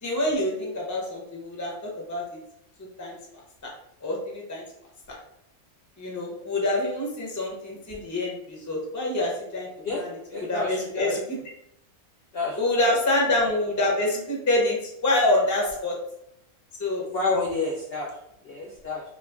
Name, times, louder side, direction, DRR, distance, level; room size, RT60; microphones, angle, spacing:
voice 1, 0.0-2.2 3.0-3.2 3.6-3.7 4.0-4.6 5.1-5.2 6.0-9.7 9.9-10.2 10.5-11.4 12.6-14.8 15.0-15.9 16.8-17.0, left 1 dB, 20° left, -2 dB, 0.5 m, -26 dB
voice 2, 10.3-11.2 12.3-12.6 12.9-13.0 17.1-18.1 18.4-19.0, left 3 dB, 65° left, -2 dB, 0.6 m, -29 dB
2.9 x 2.4 x 3.4 m, 0.78 s
omnidirectional pair, 1.5 m